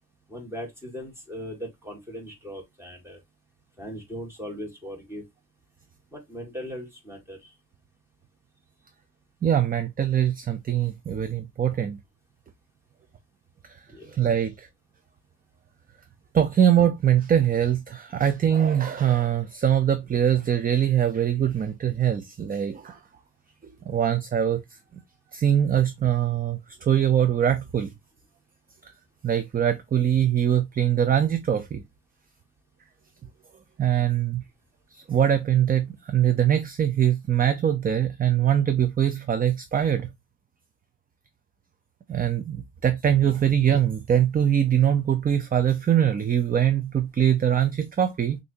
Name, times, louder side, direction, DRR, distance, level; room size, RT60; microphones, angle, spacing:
voice 1, 0.3-3.2 3.8-5.2 6.1-7.5 13.9-14.2, equal, 5° right, 1.9 m, -38 dB
voice 2, 9.4-12.0 13.6-13.8 14.1-14.7 16.3-23.0 23.9-24.6 24.9-25.0 25.3-27.9 29.2-31.8 33.8-34.4 34.9-40.1 42.1-48.4, right 9 dB, 25° right, 0.5 m, -22 dB
6.2 x 2.7 x 2.7 m
cardioid pair, 120°, 33 cm